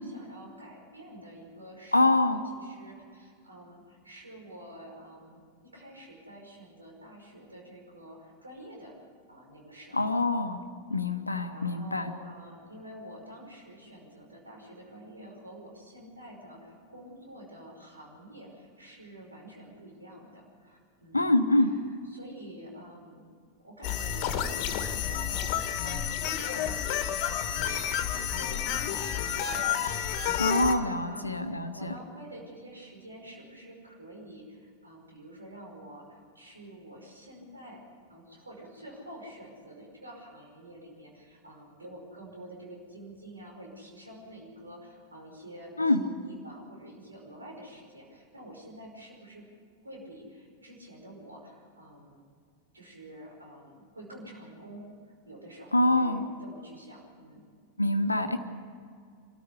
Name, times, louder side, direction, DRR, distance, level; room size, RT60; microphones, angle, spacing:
voice 1, 0.0-2.0 2.3-9.0 9.3-10.2 10.9-21.7 22.0-23.2 23.6-30.6 30.9-37.8 38.1-49.4 49.8-52.2 52.7-57.4, right 1 dB, 80° right, -1 dB, 5.2 m, -48 dB
voice 2, 1.9-2.4 9.9-10.6 10.9-12.1 21.1-21.7 30.4-31.9 45.8-46.0 55.7-56.2 57.8-58.4, left 2 dB, 85° left, 8 dB, 1.2 m, -25 dB
sound 1, 23.8-30.7, left 9 dB, 40° left, 1.8 m, -30 dB
26.5 x 13.5 x 8.3 m, 2.2 s
figure-of-eight pair, 90°, 0 cm